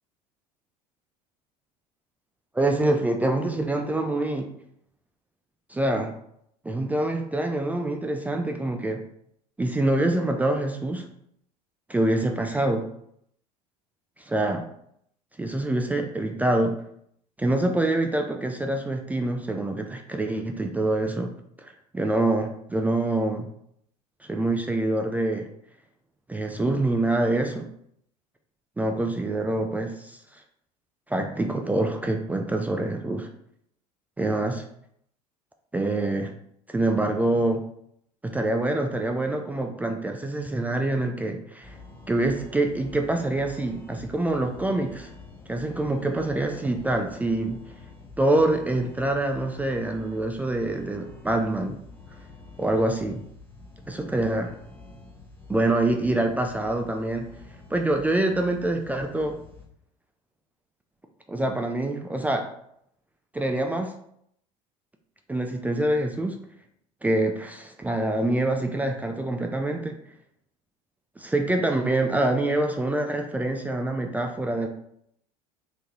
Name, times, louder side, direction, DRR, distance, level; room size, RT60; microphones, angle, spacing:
voice 1, 2.5-4.5 5.7-6.1 6.6-9.0 9.6-11.1 11.9-12.9 14.2-14.7 15.4-16.8 17.4-21.3 21.6-23.5 24.2-25.5 26.3-27.7 28.8-30.4 31.1-33.3 34.2-34.6 35.7-36.3 36.7-37.6 38.2-41.8 42.1-45.1 45.5-47.6 48.2-51.8 52.6-53.2 53.9-54.6 55.5-57.3 57.7-59.4 61.3-62.4 63.3-63.9 65.3-66.4 67.0-70.0 71.2-74.7, right 2 dB, 10° right, 3 dB, 0.3 m, -25 dB
sound 1, 41.6-59.7, left 3 dB, 10° left, 0.9 m, -47 dB
3.5 x 2.8 x 2.9 m, 0.72 s
figure-of-eight pair, 70°, 20 cm